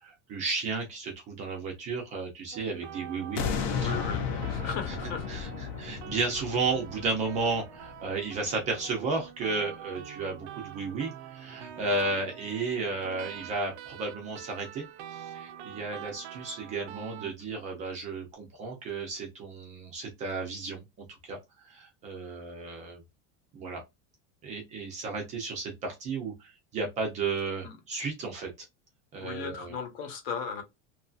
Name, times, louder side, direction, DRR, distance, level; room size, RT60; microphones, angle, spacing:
voice 1, 0.0-3.9 4.6-4.9 5.3-5.5 5.8-20.8 21.2-21.4 21.6-23.0 23.5-23.8 24.4-28.5 29.1-29.7, right 3 dB, 20° right, 0.4 m, -33 dB
sound 1, 2.5-17.3, right 9 dB, 85° right, 0.6 m, -45 dB
sound 2, 3.3-8.5 8.9-9.0, left 6 dB, 40° left, 0.6 m, -34 dB
voice 2, 3.8-5.3 27.6-27.8 29.2-30.6, left 6 dB, 60° left, 1.0 m, -36 dB
2.9 x 2.6 x 2.3 m
cardioid pair, 180°, 34 cm